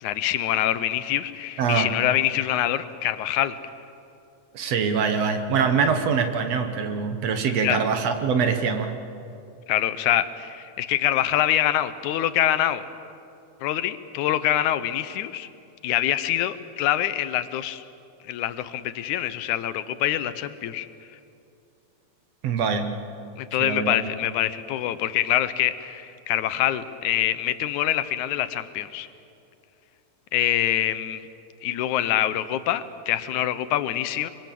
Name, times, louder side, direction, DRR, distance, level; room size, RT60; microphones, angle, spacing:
voice 1, 0.0-3.6 7.6-7.8 9.7-12.8 13.6-15.5 15.8-17.8 18.2-20.9 23.4-29.1 30.3-31.3 31.6-34.3, left 12 dB, 85° left, 13 dB, 2.3 m, -25 dB
voice 2, 1.6-1.9 4.5-8.9 22.4-22.9 23.6-24.1, right 6 dB, 65° right, 7 dB, 2.3 m, -24 dB
25.0 x 24.0 x 7.6 m, 2.6 s
omnidirectional pair, 3.4 m